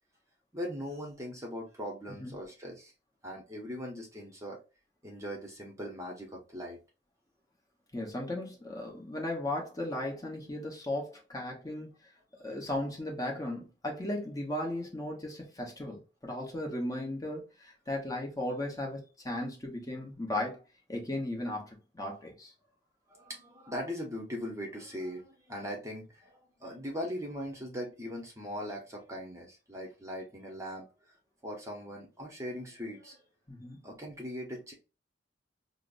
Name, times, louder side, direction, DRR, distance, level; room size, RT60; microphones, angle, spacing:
voice 1, 0.5-2.9 3.2-4.6 5.0-6.8 12.4-12.5 23.1-30.9 31.4-33.2 33.8-34.7, equal, 15° right, 0.8 m, -40 dB
voice 2, 7.9-11.9 12.4-19.0 19.2-20.6 20.9-22.5 33.5-33.8, left 1 dB, 20° left, 0.9 m, -36 dB
5.0 x 2.0 x 2.5 m
head